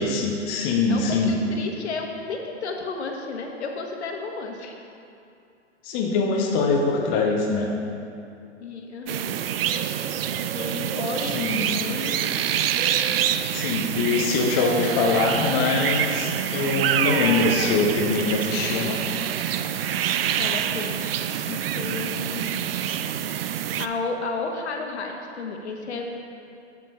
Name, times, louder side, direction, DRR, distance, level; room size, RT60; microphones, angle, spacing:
voice 1, 0.0-1.4 5.8-7.7 11.3-11.6 13.5-19.0, left 3 dB, 15° left, 0 dB, 0.4 m, -23 dB
voice 2, 0.9-4.8 8.6-9.4 10.5-12.3 20.4-21.1 21.5-22.5 23.8-26.1, left 4 dB, 65° left, 2 dB, 1.3 m, -32 dB
sound 1, 9.1-23.9, right 9 dB, 55° right, 0.4 m, -26 dB
7.4 x 7.4 x 4.2 m, 2.6 s
hypercardioid pair, 125°, 36 cm